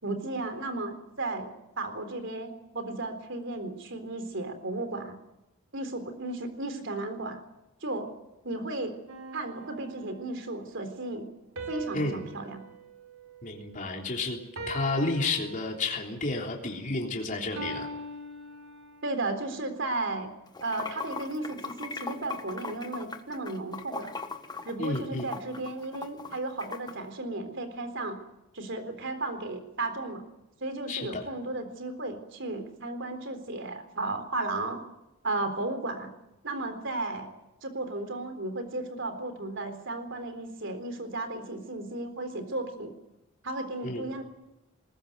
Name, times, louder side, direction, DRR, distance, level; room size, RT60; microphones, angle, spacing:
voice 1, 0.0-1.5 1.8-5.2 5.7-7.4 7.8-8.2 8.4-9.0 9.3-11.3 11.7-12.6 19.0-20.3 20.6-24.2 24.6-28.2 28.5-30.2 30.6-34.8 35.2-36.1 36.4-37.3 37.6-42.9 43.4-44.2, right 2 dB, 60° right, 8 dB, 3.8 m, -34 dB
sound 1, 9.1-10.5 11.6-14.0 14.6-16.1 17.6-19.2, right 2 dB, 75° right, 4.5 m, -42 dB
voice 2, 13.4-14.4 14.7-17.9 24.8-25.2 30.9-31.2 43.8-44.0, left 2 dB, 40° left, 0 dB, 3.5 m, -31 dB
Water / Sink (filling or washing), 20.5-26.9, left 4 dB, 20° left, 1.5 m, -39 dB
21.0 x 19.5 x 9.2 m, 0.91 s
head